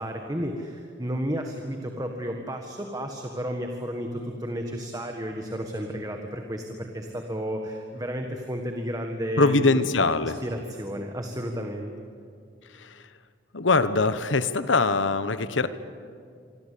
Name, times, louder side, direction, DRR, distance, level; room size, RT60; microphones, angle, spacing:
voice 1, 0.0-9.9 10.2-11.9, equal, 20° right, 3 dB, 1.7 m, -32 dB
voice 2, 9.4-10.4 12.7-13.1 13.5-15.7, left 3 dB, 85° left, 12 dB, 1.2 m, -23 dB
25.5 x 25.5 x 8.6 m, 2.3 s
head